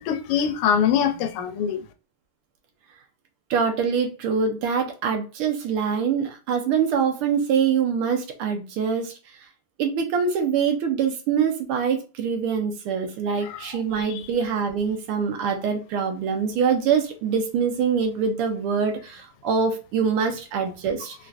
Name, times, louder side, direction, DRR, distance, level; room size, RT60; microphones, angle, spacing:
voice 1, 0.0-1.8 13.4-13.7 14.1-14.2, left 8 dB, 85° left, 1.5 m, -23 dB
voice 2, 3.5-9.1 9.8-21.1, right 6 dB, 80° right, 1.6 m, -24 dB
4.3 x 2.5 x 2.3 m
omnidirectional pair, 2.4 m